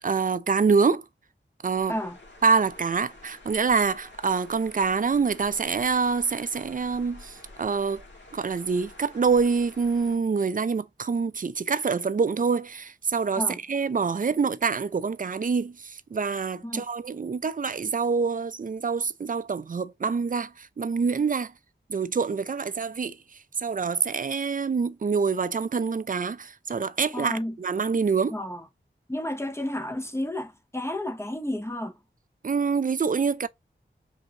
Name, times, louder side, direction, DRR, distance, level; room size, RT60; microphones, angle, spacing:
voice 1, 0.0-1.0 1.6-1.9 2.4-8.0 8.3-13.4 13.7-21.5 21.9-23.2 23.6-28.3 32.4-33.5, right 5 dB, 45° right, 0.4 m, -26 dB
sound 1, 1.7-10.2, left 2 dB, 65° left, 1.7 m, -49 dB
voice 2, 27.1-27.6 28.3-28.7 29.1-31.9, left 1 dB, 15° left, 0.6 m, -31 dB
5.2 x 2.8 x 2.7 m
wide cardioid pair, 55°, 20 cm